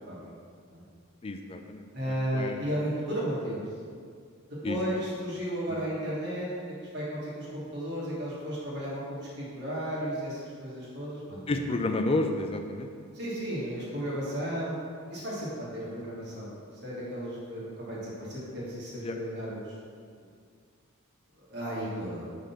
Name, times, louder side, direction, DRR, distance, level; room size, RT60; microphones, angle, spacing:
voice 1, 1.2-2.7 4.6-5.0 5.7-5.8 11.5-12.9 19.0-19.2, left 2 dB, 25° left, 5 dB, 0.4 m, -31 dB
voice 2, 1.9-3.6 4.6-6.5 6.9-11.6 13.1-14.8 15.1-16.5 16.8-19.6 21.4-22.3, equal, 50° right, -8 dB, 1.6 m, -34 dB
5.1 x 3.7 x 5.7 m, 2.2 s
head